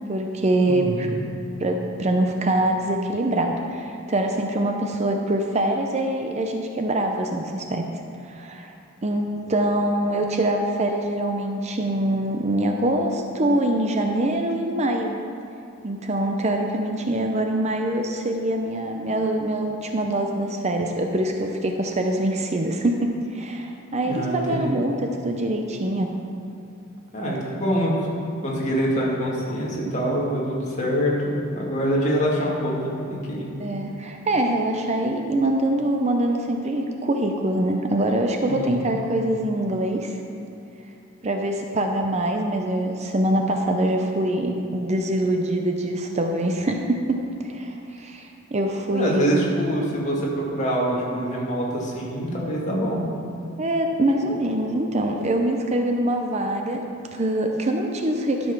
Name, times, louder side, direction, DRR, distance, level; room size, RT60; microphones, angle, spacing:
voice 1, 0.1-1.1 1.6-7.8 8.2-8.7 9.0-15.1 15.8-24.9 25.2-26.1 33.6-40.2 41.2-47.0 47.4-49.5 53.6-56.8 57.1-58.5, right 1 dB, 30° right, 3 dB, 0.6 m, -24 dB
voice 2, 0.7-1.2 24.0-24.8 27.1-28.0 28.4-33.5 38.5-38.9 48.9-53.1, equal, 35° left, -5 dB, 2.2 m, -25 dB
12.5 x 5.4 x 5.9 m, 2.7 s
head